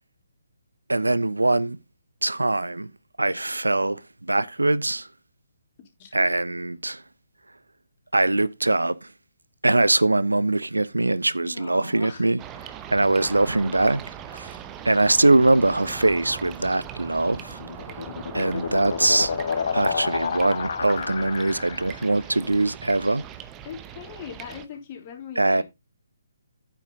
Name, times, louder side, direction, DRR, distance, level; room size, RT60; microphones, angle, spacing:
voice 1, 0.9-1.8 2.2-2.9 3.2-5.1 6.1-7.0 8.1-9.1 9.6-12.4 12.9-14.0 14.3-14.6 14.8-17.6 18.3-19.3 19.7-23.3 25.4-25.6, right 2 dB, 80° right, 0.5 m, -22 dB
voice 2, 11.4-12.2 17.8-18.4 23.6-25.6, left 7 dB, 35° left, 3.4 m, -41 dB
sound 1, 12.4-24.7, right 9 dB, 20° right, 0.9 m, -40 dB
sound 2, 17.3-22.1, left 6 dB, 55° left, 0.8 m, -30 dB
9.3 x 7.2 x 3.9 m
figure-of-eight pair, 135°, 0 cm